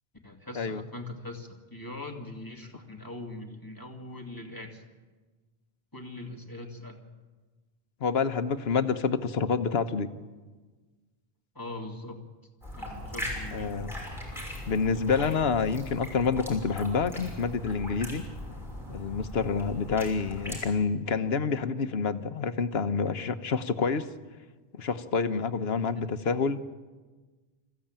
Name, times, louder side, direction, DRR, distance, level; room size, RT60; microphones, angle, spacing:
voice 1, 0.2-4.8 5.9-7.0 11.5-12.2 12.8-13.9, left 2 dB, 20° left, 2 dB, 2.5 m, -41 dB
voice 2, 8.0-10.1 13.5-13.9 14.7-18.2 18.9-24.1 24.7-26.6, left 5 dB, 80° left, 11 dB, 1.3 m, -28 dB
sound 1, 12.6-20.6, left 1 dB, ahead, 6.4 m, -39 dB
26.0 x 15.0 x 8.9 m, 1.3 s
omnidirectional pair, 1.0 m